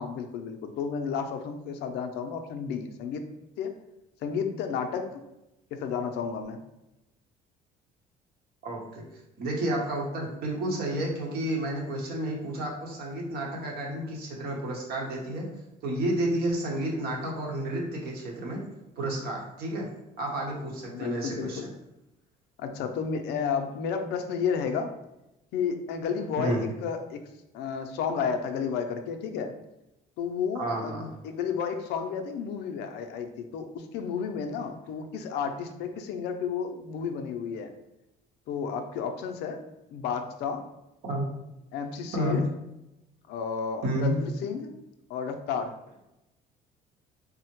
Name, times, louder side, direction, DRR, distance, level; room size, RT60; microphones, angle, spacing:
voice 1, 0.0-3.3 3.6-3.7 4.2-5.2 5.7-6.6 20.9-21.7 22.6-24.9 25.5-27.2 27.5-29.5 30.2-37.7 38.5-39.6 39.9-40.6 41.7-42.4 43.3-44.7 45.1-45.7, left 6 dB, 80° left, 6 dB, 0.4 m, -32 dB
voice 2, 8.6-9.0 9.4-15.5 15.8-18.6 19.0-19.9 20.2-21.6 26.4-26.6 30.6-31.1 41.1-41.2 42.1-42.4 43.8-44.1, right 1 dB, 65° right, -1 dB, 0.9 m, -31 dB
3.5 x 2.1 x 2.9 m, 0.92 s
cardioid pair, 110°, 17 cm